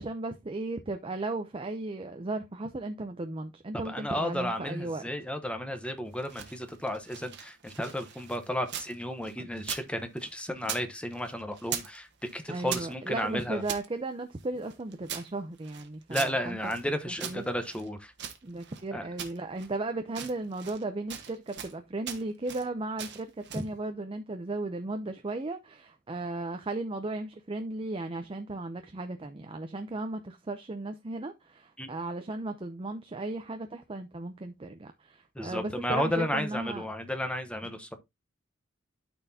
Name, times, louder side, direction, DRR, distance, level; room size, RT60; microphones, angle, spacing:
voice 1, 0.0-5.0 9.4-9.5 12.5-16.6 17.1-17.4 18.4-36.9, right 2 dB, 25° right, 0.6 m, -36 dB
voice 2, 3.8-12.1 12.3-13.6 16.1-18.1 18.9-19.0 23.5-23.6 31.8-31.9 35.4-38.0, equal, 5° left, 0.9 m, -33 dB
sound 1, 6.1-8.9 9.2-10.9 11.1-12.0 12.2-13.9 14.4-16.9 17.2-18.8 19.2-19.8 20.1-20.8 21.1-21.8 22.0-22.7 23.0-23.7, right 9 dB, 60° right, 1.3 m, -41 dB
12.5 x 4.4 x 2.7 m
head